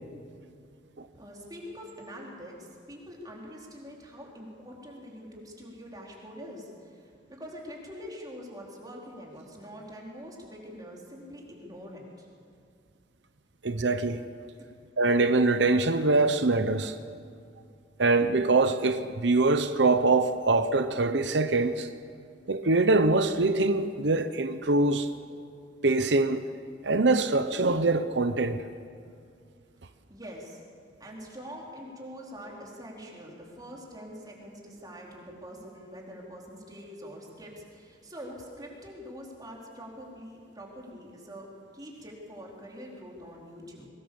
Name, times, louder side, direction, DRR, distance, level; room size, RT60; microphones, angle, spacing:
voice 1, 1.2-12.3 14.6-14.7 30.1-30.6 31.0-41.5 41.7-43.9, equal, 20° right, 4.2 m, -44 dB
voice 2, 13.6-14.2 15.0-16.9 18.0-21.9 22.5-25.1 25.8-26.5 26.8-28.6, right 3 dB, 65° right, 0.9 m, -24 dB
23.0 x 20.0 x 7.1 m
head